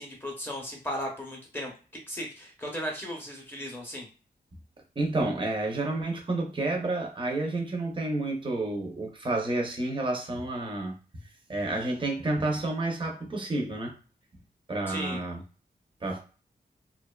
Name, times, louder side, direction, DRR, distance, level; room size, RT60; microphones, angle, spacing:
voice 1, 0.0-1.7 2.1-4.1 14.9-15.2, equal, 10° left, -1 dB, 0.7 m, -36 dB
voice 2, 5.0-11.0 11.5-13.9 14.7-15.4 16.0-16.2, right 2 dB, 30° right, 0 dB, 0.7 m, -30 dB
2.5 x 2.2 x 2.2 m, 0.37 s
wide cardioid pair, 90°, 17 cm